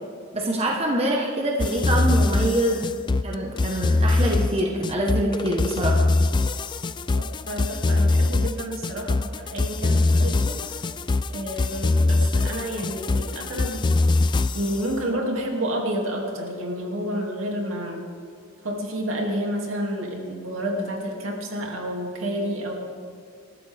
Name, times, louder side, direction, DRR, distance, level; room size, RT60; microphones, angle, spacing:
voice 1, 0.3-2.9 3.2-6.1, right 1 dB, 30° right, -1 dB, 1.4 m, -25 dB
sound 1, 1.6-14.8, left 2 dB, 20° left, 0.3 m, -22 dB
voice 2, 7.1-10.8 11.3-13.9 14.5-18.0 18.6-22.8, equal, 75° right, 0 dB, 2.8 m, -30 dB
28.0 x 13.0 x 3.6 m, 2.2 s
head